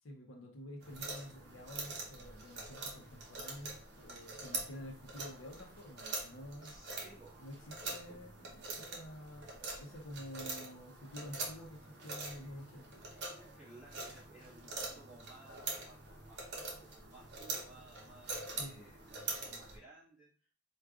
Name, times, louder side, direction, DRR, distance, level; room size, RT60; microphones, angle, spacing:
voice 1, 0.0-6.8 7.4-7.6 7.8-9.5 9.8-13.1 18.6-18.9, equal, 75° left, 2 dB, 0.7 m, -49 dB
sound 1, 0.8-19.8, right 3 dB, 55° right, 0.8 m, -44 dB
voice 2, 6.6-7.4 7.9-8.2 13.5-20.5, right 2 dB, 5° right, -9 dB, 1.5 m, -58 dB
4.6 x 2.3 x 2.4 m, 0.42 s
head